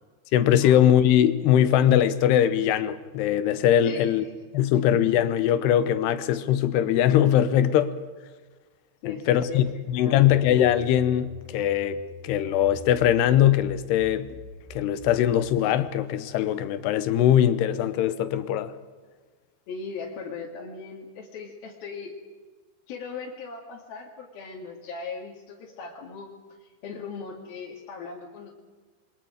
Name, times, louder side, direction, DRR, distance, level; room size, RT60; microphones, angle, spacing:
voice 1, 0.3-4.3 4.5-7.9 9.1-12.0 12.2-14.3 14.7-18.7, left 10 dB, 85° left, 3.1 m, -21 dB
voice 2, 3.8-4.3 7.7-7.9 9.0-9.6 10.0-10.4 19.7-22.2 22.9-26.3 26.6-28.6, left 5 dB, 65° left, 4.0 m, -38 dB
sound 1, 10.6-15.6, equal, 70° right, 10.0 m, -45 dB
28.0 x 23.5 x 5.1 m
omnidirectional pair, 4.7 m